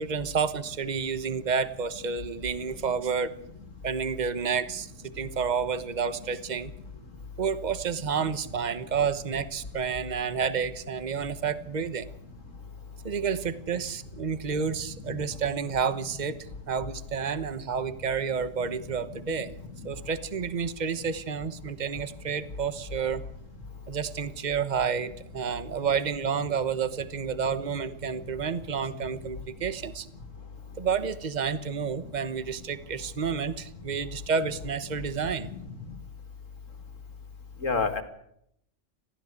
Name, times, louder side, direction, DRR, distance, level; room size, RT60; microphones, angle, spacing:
voice 1, 0.0-3.3 3.8-6.7 7.4-12.1 13.0-16.4 16.7-19.5 19.8-23.2 23.9-30.1 30.8-35.5, right 6 dB, 35° right, 13 dB, 1.2 m, -30 dB
voice 2, 35.4-35.8 37.6-38.0, left 4 dB, 75° left, 8 dB, 2.4 m, -30 dB
21.5 x 15.5 x 8.3 m, 0.73 s
omnidirectional pair, 1.3 m